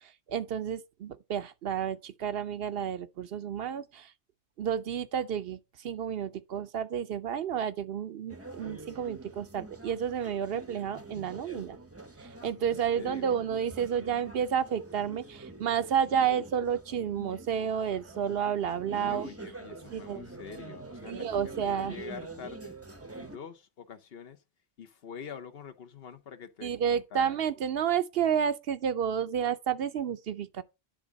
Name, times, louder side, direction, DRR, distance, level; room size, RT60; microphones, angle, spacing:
voice 1, 0.0-4.1 4.6-11.8 12.2-19.3 19.9-20.3 21.1-21.9 26.6-30.6, right 8 dB, 65° right, 0.8 m, -31 dB
sound 1, 8.3-23.4, right 2 dB, 15° right, 0.6 m, -45 dB
voice 2, 12.9-13.4 18.9-22.7 23.2-24.4 24.8-27.4, left 7 dB, 65° left, 1.1 m, -46 dB
10.0 x 3.6 x 5.1 m
omnidirectional pair, 1.1 m